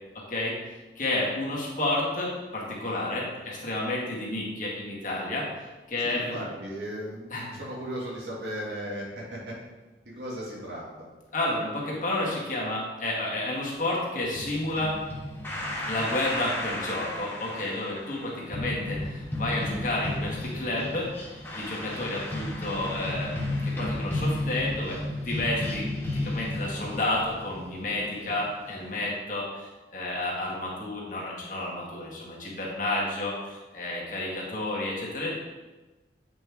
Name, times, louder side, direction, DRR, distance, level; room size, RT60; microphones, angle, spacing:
voice 1, 1.0-5.5 5.9-6.3 7.3-7.6 11.3-15.0 15.8-29.7 29.9-35.3, left 2 dB, 45° left, -4 dB, 1.8 m, -31 dB
voice 2, 6.0-9.5 10.1-11.1 21.8-22.0 28.1-28.3, equal, 85° right, -4 dB, 2.2 m, -37 dB
sound 1, 14.1-29.1, left 1 dB, 15° left, 1.4 m, -33 dB
8.0 x 5.2 x 3.6 m, 1.2 s
head